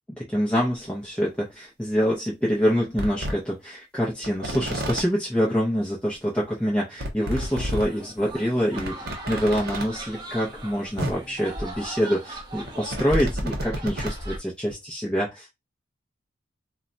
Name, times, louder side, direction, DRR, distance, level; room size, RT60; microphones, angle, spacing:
voice 1, 0.1-15.5, equal, 5° left, 0.5 m, -26 dB
sound 1, 0.8-0.9 1.9-2.0 2.5-2.6 3.0-3.3 4.2-5.0 6.1-6.2 6.4-6.5 7.0-7.8 8.3-8.4 8.7-9.8 10.7-10.8 11.0-11.1 12.4-14.2 14.7-14.8, equal, 55° right, 0.8 m, -31 dB
sound 2, 7.3-14.4, right 1 dB, 25° right, 0.8 m, -36 dB
2.2 x 2.1 x 3.9 m
head